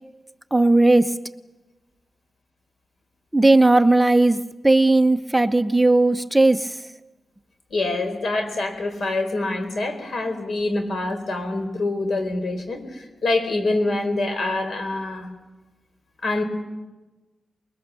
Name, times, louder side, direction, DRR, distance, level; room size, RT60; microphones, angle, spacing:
voice 1, 0.5-1.2 3.3-6.8, right 2 dB, 10° right, 10 dB, 0.7 m, -17 dB
voice 2, 7.7-15.3 16.2-16.4, left 2 dB, 75° left, 7 dB, 4.1 m, -25 dB
25.0 x 22.0 x 7.0 m, 1.2 s
wide cardioid pair, 90°, 0 cm